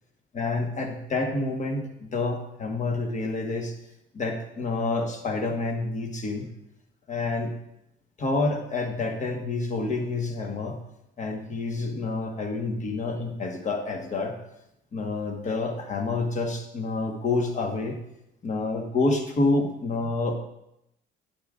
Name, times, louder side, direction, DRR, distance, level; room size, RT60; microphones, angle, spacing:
voice 1, 0.3-3.7 4.1-6.5 7.1-7.5 8.2-10.8 11.2-14.4 14.9-18.0 18.4-20.3, left 3 dB, 35° left, 4 dB, 1.3 m, -28 dB
10.5 x 8.5 x 2.5 m, 0.84 s
cardioid pair, 105°, 21 cm